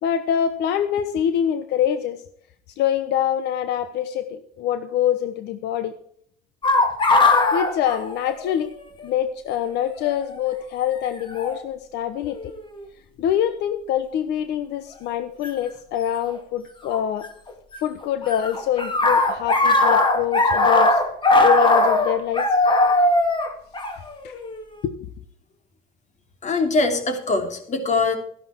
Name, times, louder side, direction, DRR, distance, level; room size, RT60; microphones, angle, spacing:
voice 1, 0.0-2.2 2.8-5.9 7.5-8.7 9.0-12.5 13.2-17.3 17.8-21.0 21.4-22.5 24.2-24.3 24.8-24.9, left 10 dB, 80° left, 11 dB, 0.9 m, -25 dB
sound 1, 6.6-8.7 9.0-9.1 10.1-10.3 11.4-11.6 12.3-12.8 15.4-15.5 16.9-17.8 18.0-24.6, left 2 dB, 30° left, 2.5 m, -19 dB
voice 2, 26.4-28.2, left 3 dB, 45° left, 6 dB, 3.1 m, -22 dB
13.5 x 11.5 x 4.5 m, 0.64 s
cardioid pair, 110°, 17 cm